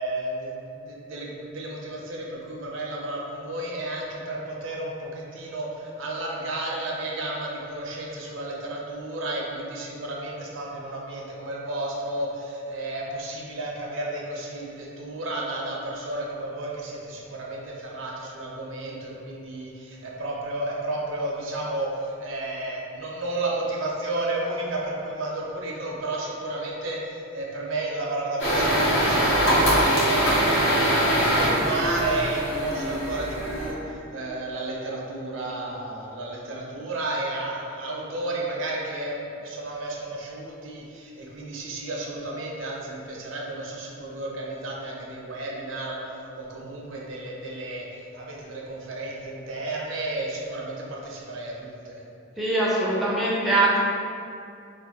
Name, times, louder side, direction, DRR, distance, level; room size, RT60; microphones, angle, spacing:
voice 1, 0.0-52.0, right 2 dB, 75° right, -3 dB, 0.5 m, -32 dB
sound 1, 28.4-33.7, equal, 65° left, 0.7 m, -22 dB
voice 2, 52.4-53.8, right 2 dB, ahead, -7 dB, 0.4 m, -22 dB
2.6 x 2.1 x 3.7 m, 2.5 s
head